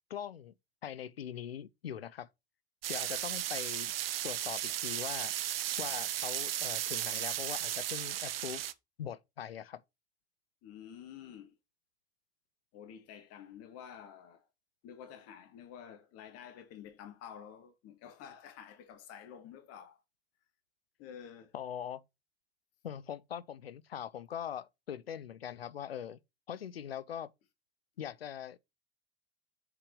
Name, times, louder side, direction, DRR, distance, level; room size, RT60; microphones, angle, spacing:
voice 1, 0.1-0.5 0.8-2.3 2.9-3.9 4.2-5.3 5.8-8.6 9.0-9.8 21.5-22.0 22.8-26.2 26.5-27.3 28.0-28.6, left 9 dB, 85° left, 0.5 m, -41 dB
sound 1, 2.8-8.7, right 12 dB, 80° right, 0.6 m, -35 dB
voice 2, 10.6-11.6 12.7-14.5 14.8-20.0 21.0-21.5, left 8 dB, 55° left, 1.8 m, -50 dB
6.9 x 5.1 x 4.6 m
figure-of-eight pair, 60°, 29 cm